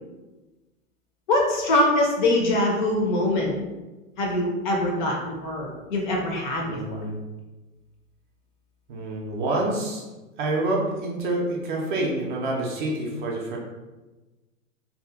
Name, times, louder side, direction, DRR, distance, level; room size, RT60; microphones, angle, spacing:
voice 1, 1.3-3.5 4.2-7.0, left 1 dB, 35° left, 0 dB, 0.5 m, -23 dB
voice 2, 6.6-7.2 8.9-10.0 10.4-13.6, right 2 dB, 35° right, -1 dB, 0.5 m, -27 dB
2.7 x 2.3 x 2.4 m, 1.1 s
figure-of-eight pair, 105°, 42 cm